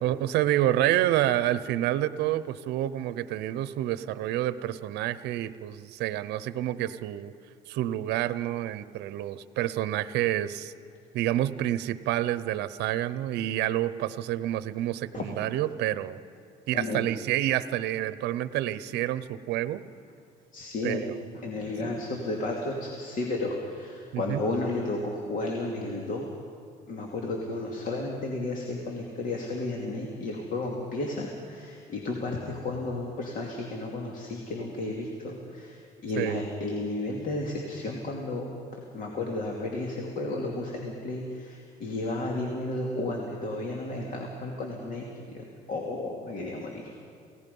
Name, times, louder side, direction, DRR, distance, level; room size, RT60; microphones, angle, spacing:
voice 1, 0.0-7.3 7.7-10.7 11.1-16.2 16.7-19.8 20.8-21.2 24.1-24.4 36.2-36.4, right 13 dB, 80° right, 15 dB, 0.7 m, -28 dB
voice 2, 20.5-21.0 21.4-26.3 26.9-38.5 38.9-45.0 45.3-46.9, left 2 dB, 50° left, 0 dB, 2.6 m, -33 dB
29.0 x 17.5 x 5.4 m, 2.4 s
cardioid pair, 110°, 17 cm